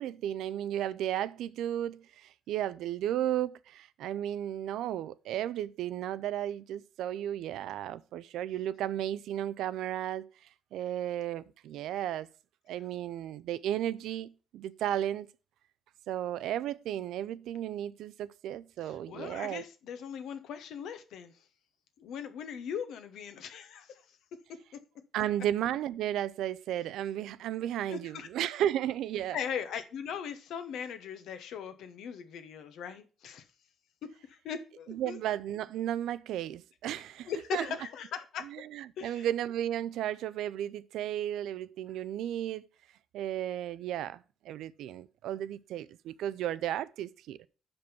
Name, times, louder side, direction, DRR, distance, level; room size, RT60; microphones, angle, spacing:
voice 1, 0.0-10.3 10.7-12.3 12.7-15.3 16.1-19.6 25.1-29.4 34.9-37.6 38.5-42.6 43.1-47.4, right 11 dB, 85° right, 0.4 m, -34 dB
voice 2, 18.8-21.3 22.0-24.2 24.5-24.6 27.9-28.3 29.3-33.4 34.0-35.2 37.3-38.6 39.0-39.3, left 8 dB, 80° left, 1.0 m, -39 dB
6.0 x 5.2 x 6.9 m
cardioid pair, 90°, 0 cm